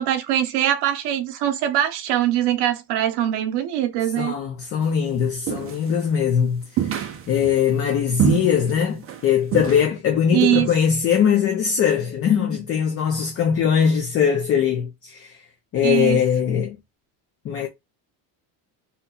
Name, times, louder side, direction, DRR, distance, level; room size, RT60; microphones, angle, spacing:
voice 1, 0.0-4.3 10.3-10.7 15.8-16.2, right 12 dB, 65° right, 0.7 m, -22 dB
voice 2, 4.2-7.0 7.3-15.4 15.7-16.8 17.4-17.7, left 8 dB, 30° left, 0.5 m, -21 dB
sound 1, 5.5-6.0 6.8-7.6 8.2-8.7 9.0-9.2 9.5-9.9, right 8 dB, 30° right, 0.5 m, -24 dB
2.8 x 2.2 x 3.7 m
cardioid pair, 165°, 44 cm